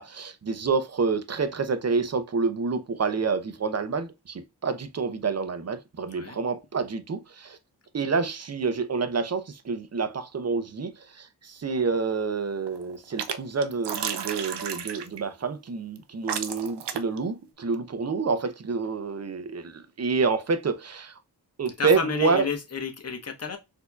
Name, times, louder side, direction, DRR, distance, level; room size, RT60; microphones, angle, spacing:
voice 1, 0.0-7.6 7.9-21.2 21.6-22.5, right 4 dB, 40° right, 0.7 m, -28 dB
sound 1, 11.7-12.2 12.5-13.4 13.6-15.2 16.0-16.1 16.3-17.2, right 7 dB, 85° right, 0.6 m, -32 dB
voice 2, 21.7-23.6, left 5 dB, 40° left, 1.0 m, -31 dB
4.3 x 2.8 x 2.2 m
cardioid pair, 60°, 40 cm